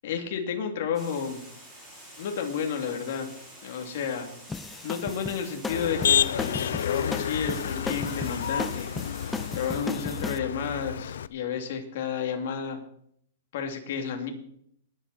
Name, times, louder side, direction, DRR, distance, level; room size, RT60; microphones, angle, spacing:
voice 1, 0.0-1.4 2.2-3.3 3.6-4.3 4.8-8.9 9.5-12.8 13.5-14.3, left 6 dB, 55° left, 3 dB, 3.0 m, -31 dB
Water, 0.9-9.7, right 1 dB, 10° right, 5.6 m, -48 dB
sound 1, 4.5-10.4, left 4 dB, 10° left, 0.5 m, -35 dB
Motor vehicle (road), 5.7-11.3, left 9 dB, 80° left, 0.6 m, -29 dB
21.0 x 8.3 x 4.4 m, 0.67 s
hypercardioid pair, 165°, 0 cm